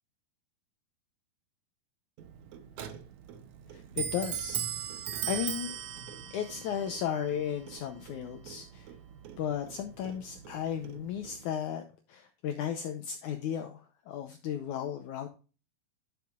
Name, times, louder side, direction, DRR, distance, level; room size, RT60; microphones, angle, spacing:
Clock, 2.2-11.5, right 9 dB, 85° right, 1.6 m, -40 dB
voice 1, 3.7-4.6 5.3-5.7 6.3-8.9 9.4-15.3, left 9 dB, 85° left, 7 dB, 1.7 m, -35 dB
11.0 x 6.9 x 2.4 m, 0.33 s
omnidirectional pair, 4.5 m